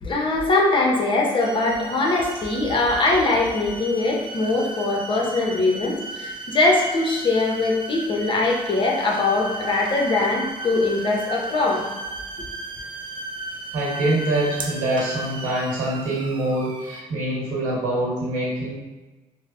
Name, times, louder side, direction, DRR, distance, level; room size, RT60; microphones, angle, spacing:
voice 1, 0.0-11.8, left 2 dB, 40° left, -1 dB, 0.7 m, -22 dB
sound 1, 1.4-17.0, right 2 dB, 40° right, 0.4 m, -35 dB
voice 2, 13.7-18.7, right 1 dB, 80° right, -5 dB, 1.0 m, -25 dB
3.1 x 2.0 x 2.5 m, 1.1 s
supercardioid pair, 70°, 13 cm